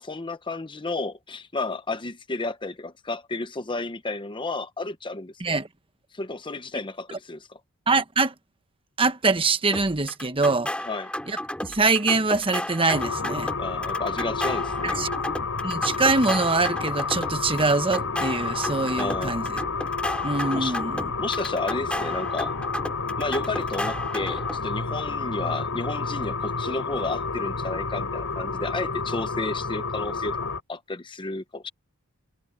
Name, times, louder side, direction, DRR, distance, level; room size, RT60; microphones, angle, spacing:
voice 1, 0.0-5.3 6.1-7.6 10.9-11.1 13.6-15.1 19.0-19.5 20.5-20.8 21.2-22.6 23.2-31.7, left 3 dB, 20° left, 0.8 m, -32 dB
voice 2, 7.9-8.3 9.0-10.7 11.3-13.5 14.8-15.1 15.6-19.6 20.2-21.1, right 3 dB, 25° right, 1.1 m, -24 dB
sound 1, 9.7-24.6, left 1 dB, 5° left, 5.4 m, -34 dB
sound 2, 12.9-30.6, left 4 dB, 65° left, 5.3 m, -30 dB
head